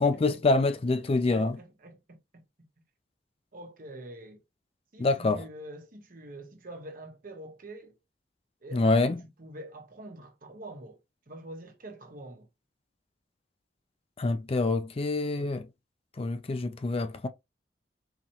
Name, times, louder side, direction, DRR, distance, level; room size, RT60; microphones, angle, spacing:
voice 1, 0.0-1.6 5.0-5.4 8.7-9.2 14.2-15.7 16.2-17.3, left 3 dB, 35° left, 0.4 m, -26 dB
voice 2, 1.0-2.4 3.5-4.4 4.9-8.0 8.6-11.0 11.3-12.5 15.3-15.5, right 1 dB, 50° right, 1.1 m, -46 dB
4.0 x 2.9 x 3.0 m
head